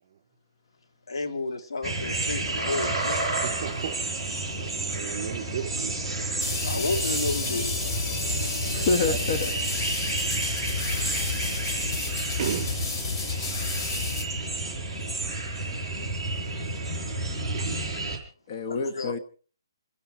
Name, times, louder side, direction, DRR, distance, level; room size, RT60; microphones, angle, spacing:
voice 1, 1.1-3.4 6.6-7.8 13.4-13.6 16.6-16.7 18.7-19.2, left 3 dB, 80° left, 2.6 m, -32 dB
sound 1, 1.8-18.2, right 2 dB, 10° left, 5.4 m, -31 dB
voice 2, 3.6-4.0 4.9-6.0 8.6-9.2 12.4-12.8 16.4-16.5 17.6-17.7, right 9 dB, 40° right, 3.5 m, -34 dB
sound 2, 6.4-14.2, left 4 dB, 55° left, 3.0 m, -31 dB
voice 3, 8.7-9.5 18.5-19.2, left 4 dB, 40° left, 1.2 m, -27 dB
28.5 x 11.0 x 4.4 m
hypercardioid pair, 155°, 3 cm